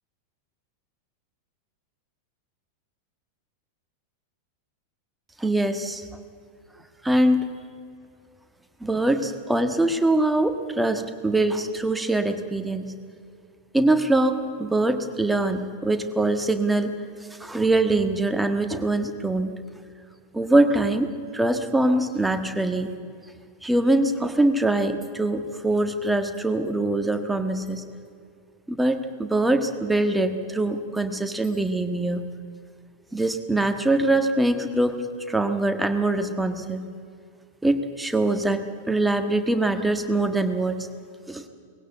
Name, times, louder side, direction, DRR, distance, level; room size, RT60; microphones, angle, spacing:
voice 1, 5.4-6.0 7.0-7.5 8.8-12.9 13.7-16.9 17.4-19.5 20.3-22.9 23.6-27.8 28.7-32.2 33.1-35.0 35.3-36.8 37.6-40.9 41.3-41.4, right 2 dB, 5° right, 7 dB, 1.5 m, -23 dB
20.0 x 16.5 x 8.2 m, 2.3 s
figure-of-eight pair, 90°, 0 cm